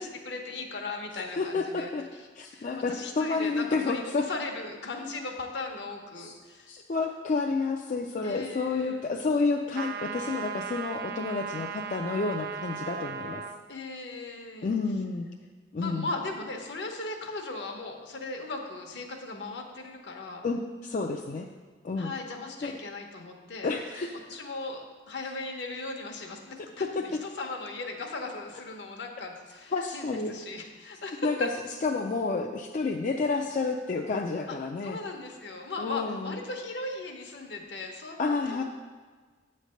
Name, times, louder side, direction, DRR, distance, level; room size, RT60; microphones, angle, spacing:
voice 1, 0.0-1.9 2.5-6.8 8.2-9.0 13.7-14.7 15.8-20.4 22.0-23.7 24.3-31.5 34.5-34.6 34.8-38.6, left 3 dB, 70° left, 2 dB, 0.9 m, -38 dB
voice 2, 1.4-2.0 2.4-4.2 6.2-6.3 6.7-13.4 14.6-15.3 15.7-16.1 20.4-21.5 21.8-22.1 22.6-22.8 23.6-24.2 26.8-27.2 29.7-30.3 31.2-31.5 31.8-35.0 35.8-36.4 38.2-38.6, left 4 dB, 45° left, 1 dB, 0.4 m, -30 dB
sound 1, 9.7-13.6, right 6 dB, 55° right, 0.4 m, -37 dB
8.2 x 3.3 x 6.4 m, 1.4 s
head